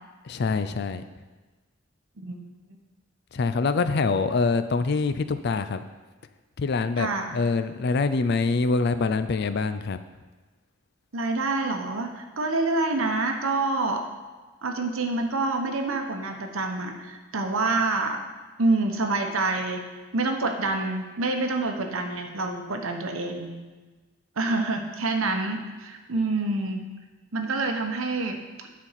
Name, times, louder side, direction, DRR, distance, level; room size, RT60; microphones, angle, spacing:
voice 1, 0.2-1.0 3.3-5.8 6.6-10.0, left 4 dB, 50° left, 11 dB, 0.4 m, -25 dB
voice 2, 2.2-2.8 7.0-7.4 11.1-14.1 14.6-18.2 18.6-19.9 20.1-23.6 24.4-26.9 27.3-28.7, right 3 dB, 85° right, 4 dB, 1.0 m, -27 dB
9.6 x 4.3 x 5.8 m, 1.3 s
head